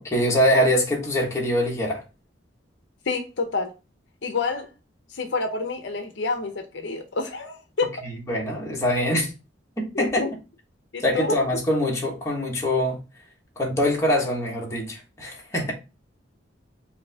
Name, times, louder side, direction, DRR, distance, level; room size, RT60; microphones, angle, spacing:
voice 1, 0.0-2.0 8.0-9.3 9.8-10.2 11.0-13.0 13.6-15.7, equal, 15° left, 1.3 m, -23 dB
voice 2, 3.1-3.7 4.2-4.7 5.1-7.9 9.9-10.3 10.9-11.4, left 3 dB, 65° left, 0.6 m, -28 dB
5.1 x 2.7 x 3.4 m
head